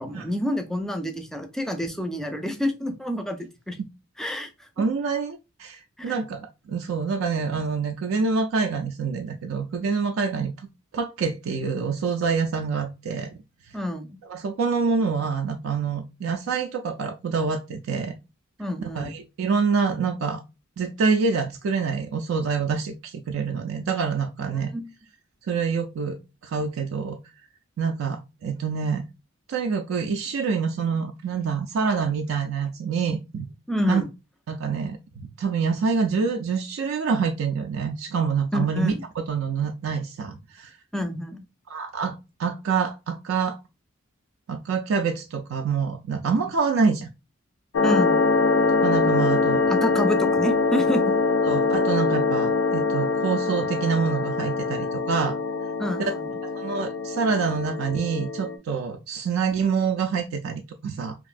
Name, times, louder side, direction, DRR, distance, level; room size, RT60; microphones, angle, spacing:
voice 1, 0.0-3.8 4.2-4.7 6.0-6.2 13.7-14.2 18.6-19.1 24.5-24.9 33.7-34.1 38.5-39.0 40.9-41.5 47.8-48.3 49.7-51.0 55.8-56.3, left 1 dB, ahead, 0.4 m, -28 dB
voice 2, 4.8-10.5 10.9-13.3 14.3-18.1 18.8-20.4 20.8-24.7 25.5-27.2 27.8-29.0 29.5-33.5 33.9-34.0 34.5-40.8 41.7-43.6 44.5-47.1 48.8-49.6 51.4-55.4 56.0-56.1 56.4-61.2, right 5 dB, 75° right, 0.3 m, -26 dB
sound 1, 47.7-58.6, left 4 dB, 65° left, 0.4 m, -23 dB
3.0 x 2.5 x 2.4 m
head